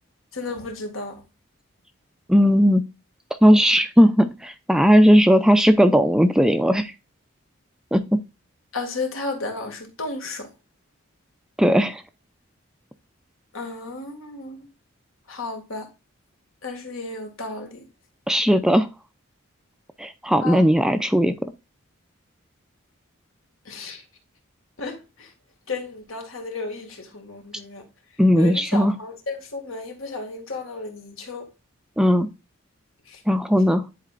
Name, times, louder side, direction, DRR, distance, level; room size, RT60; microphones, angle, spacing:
voice 1, 0.3-1.2 8.7-10.5 13.5-14.7 15.3-15.9 16.6-17.9 20.4-20.6 23.7-24.0 24.8-25.3 25.7-27.8 28.4-31.5 33.1-33.2, left 3 dB, 80° left, 2.1 m, -33 dB
voice 2, 2.3-2.8 3.4-6.9 7.9-8.0 11.6-12.0 18.3-18.9 20.0-21.4 28.2-28.9 32.0-32.3 33.3-33.8, equal, 5° right, 0.4 m, -17 dB
10.5 x 4.2 x 2.4 m
head